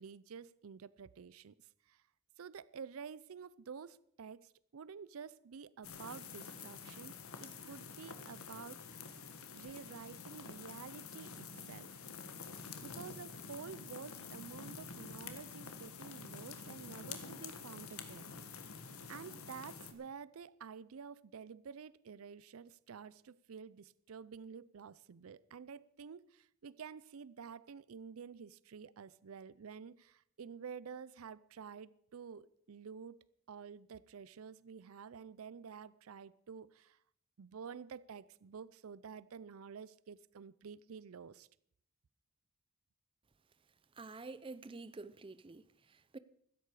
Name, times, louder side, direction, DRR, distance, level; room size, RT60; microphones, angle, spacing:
voice 1, 0.0-1.5 1.9-2.0 2.4-9.1 9.6-12.3 12.8-18.7 19.1-37.0 37.4-41.5, right 6 dB, 80° right, 0.5 m, -50 dB
sound 1, 5.8-19.9, left 5 dB, 80° left, 1.6 m, -48 dB
voice 2, 44.0-46.2, right 3 dB, 25° right, 0.5 m, -49 dB
16.0 x 13.0 x 4.8 m
head